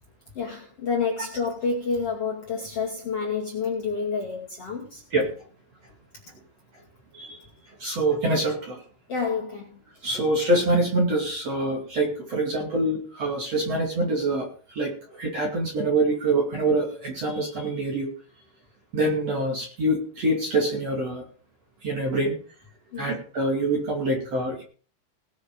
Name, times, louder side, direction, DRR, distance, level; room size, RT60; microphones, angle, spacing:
voice 1, 0.3-5.0 9.1-9.7 22.9-23.1, left 5 dB, 40° left, -2 dB, 2.6 m, -29 dB
voice 2, 7.8-8.8 10.0-18.1 18.9-21.2 21.8-22.4 23.0-24.6, right 2 dB, 40° right, 0 dB, 3.0 m, -25 dB
18.5 x 7.1 x 5.3 m, 0.41 s
omnidirectional pair, 5.4 m